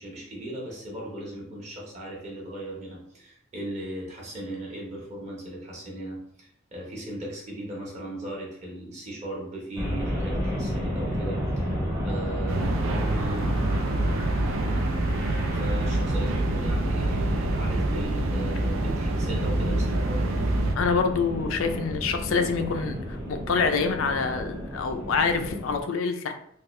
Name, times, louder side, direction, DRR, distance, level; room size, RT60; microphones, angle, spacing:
voice 1, 0.0-13.6 15.2-20.4, right 1 dB, 35° right, -3 dB, 1.0 m, -38 dB
sound 1, 9.8-25.8, equal, 15° right, 0.8 m, -31 dB
sound 2, 12.5-20.8, right 2 dB, 70° right, 0.4 m, -27 dB
voice 2, 20.8-23.2 23.5-26.3, left 5 dB, 70° left, 7 dB, 0.4 m, -26 dB
3.5 x 2.3 x 3.1 m, 0.67 s
head